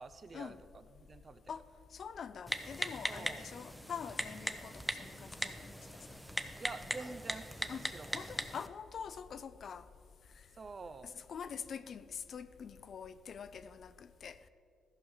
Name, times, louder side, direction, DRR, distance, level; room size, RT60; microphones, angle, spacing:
voice 1, 0.0-1.4 3.1-3.4 6.6-8.3 10.6-11.1, right 4 dB, 35° right, 0.6 m, -48 dB
voice 2, 1.9-5.8 7.7-7.9 8.1-9.9 11.0-14.4, left 7 dB, 55° left, 0.5 m, -45 dB
Typing, 2.5-8.7, equal, ahead, 0.7 m, -40 dB
14.0 x 5.4 x 6.5 m
cardioid pair, 90°, 0 cm